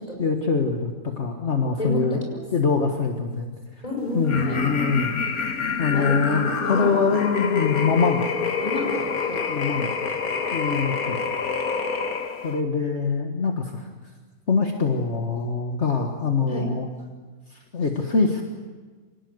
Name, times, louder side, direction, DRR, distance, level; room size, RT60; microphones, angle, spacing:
voice 1, 0.2-2.2 2.5-3.5 4.1-5.1 5.8-8.3 9.5-9.9 10.5-11.2 12.4-13.9 14.5-16.9 17.5-18.4, left 4 dB, 50° left, 3 dB, 1.9 m, -24 dB
voice 2, 1.8-2.4 3.8-4.7 5.9-7.0 8.6-9.4 16.5-16.7, equal, 25° left, 1 dB, 5.9 m, -30 dB
sound 1, 4.2-12.6, left 5 dB, 80° left, 1.9 m, -27 dB
27.0 x 19.0 x 8.0 m, 1.4 s
omnidirectional pair, 1.5 m